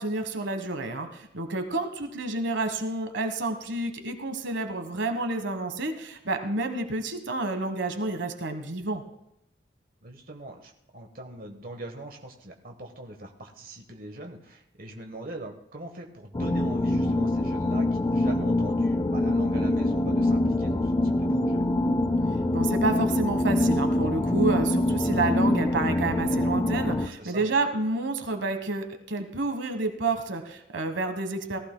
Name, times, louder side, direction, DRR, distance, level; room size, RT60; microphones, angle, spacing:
voice 1, 0.0-9.0 22.5-31.6, right 2 dB, 75° right, 7 dB, 1.3 m, -29 dB
voice 2, 10.0-21.6 27.0-27.5, right 1 dB, 50° right, 3 dB, 1.2 m, -42 dB
sound 1, 16.3-27.1, left 1 dB, 20° left, 0.3 m, -24 dB
18.5 x 14.5 x 2.2 m, 0.79 s
head